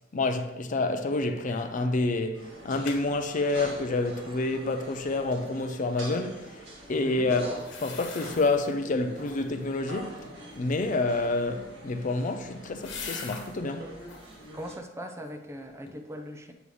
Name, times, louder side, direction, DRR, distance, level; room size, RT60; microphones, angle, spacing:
voice 1, 0.1-10.3 10.6-13.9, left 2 dB, 40° left, 0.5 m, -28 dB
sound 1, 1.4-1.8 2.1-2.2 2.5-3.0 7.5-8.7 9.1-9.6 11.6-13.6 14.0-14.4 14.9-15.5 15.9-16.0, left 5 dB, 65° left, 1.2 m, -43 dB
sound 2, 2.3-14.8, right 1 dB, 65° right, 1.9 m, -45 dB
voice 2, 14.5-16.5, equal, 15° right, 0.6 m, -40 dB
8.0 x 5.4 x 3.2 m
head